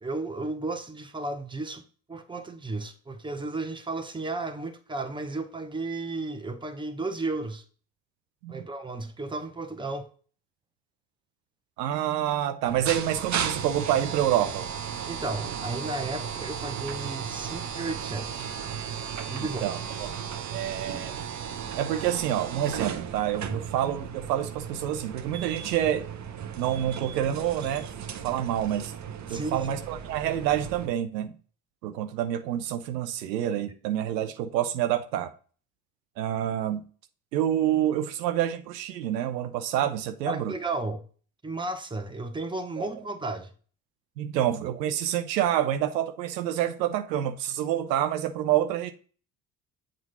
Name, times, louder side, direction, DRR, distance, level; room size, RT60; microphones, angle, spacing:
voice 1, 0.0-1.8 2.1-7.6 8.5-10.1 15.1-18.5 19.3-19.7 29.3-29.7 40.3-41.0 41.4-43.5, right 2 dB, 10° right, 0.9 m, -33 dB
voice 2, 11.8-14.7 19.6-19.8 20.5-21.1 21.8-26.1 26.6-27.9 28.2-28.9 29.3-31.4 31.8-35.3 36.2-36.8 37.3-40.5 42.8-42.9 44.2-48.9, right 11 dB, 80° right, 0.6 m, -27 dB
sound 1, 12.6-30.9, right 8 dB, 35° right, 0.8 m, -35 dB
7.4 x 2.6 x 5.4 m
hypercardioid pair, 50°, 49 cm